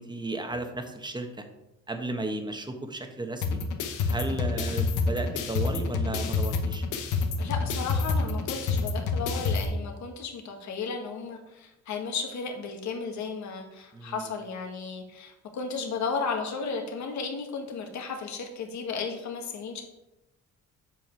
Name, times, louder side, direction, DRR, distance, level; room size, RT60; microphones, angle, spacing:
voice 1, 0.0-1.4 1.9-3.6 4.1-6.8 13.9-14.3, right 2 dB, 15° right, 5 dB, 1.1 m, -34 dB
sound 1, 3.4-9.7, left 4 dB, 90° left, 1.0 m, -28 dB
voice 2, 7.4-19.8, left 5 dB, 70° left, 3 dB, 1.6 m, -34 dB
7.7 x 5.2 x 4.6 m, 0.95 s
cardioid pair, 90°, 30 cm